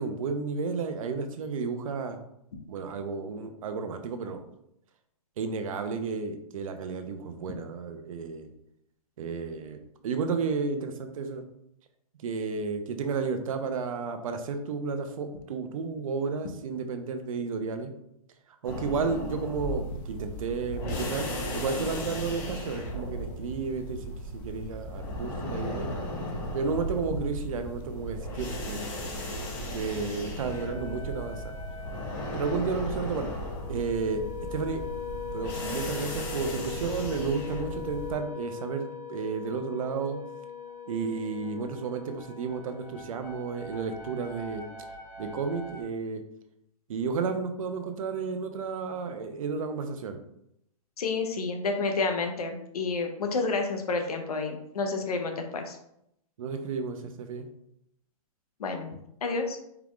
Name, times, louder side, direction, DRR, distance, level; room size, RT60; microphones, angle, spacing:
voice 1, 0.0-2.2 2.7-4.4 5.4-8.5 9.2-11.4 12.2-17.9 18.6-21.3 21.5-24.0 24.3-25.9 26.5-28.8 29.6-31.4 32.3-33.3 33.7-34.2 34.5-34.8 35.3-40.2 40.9-44.6 45.2-46.2 46.9-50.2 56.4-57.4, right 5 dB, 65° right, 7 dB, 0.7 m, -32 dB
sound 1, 18.6-38.2, equal, 25° left, 1.0 m, -36 dB
sound 2, 30.4-45.8, left 6 dB, 70° left, 1.6 m, -42 dB
voice 2, 51.0-55.8 58.6-58.9 59.2-59.6, left 3 dB, 90° left, 4 dB, 0.9 m, -30 dB
4.6 x 3.5 x 2.4 m, 0.77 s
hypercardioid pair, 150°, 19 cm